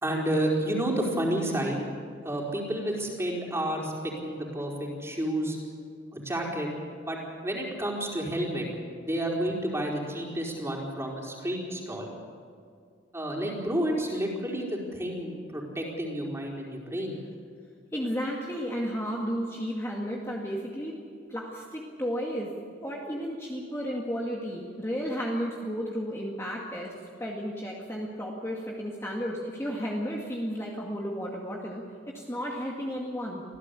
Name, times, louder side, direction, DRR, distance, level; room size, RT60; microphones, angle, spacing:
voice 1, 0.0-1.8 2.2-5.6 6.1-6.7 7.0-8.7 9.0-12.1 13.1-17.2, right 1 dB, 15° right, -1 dB, 4.6 m, -30 dB
voice 2, 17.9-20.9 21.3-22.5 22.8-33.4, equal, 15° left, -3 dB, 2.2 m, -33 dB
26.0 x 16.0 x 8.4 m, 2.2 s
head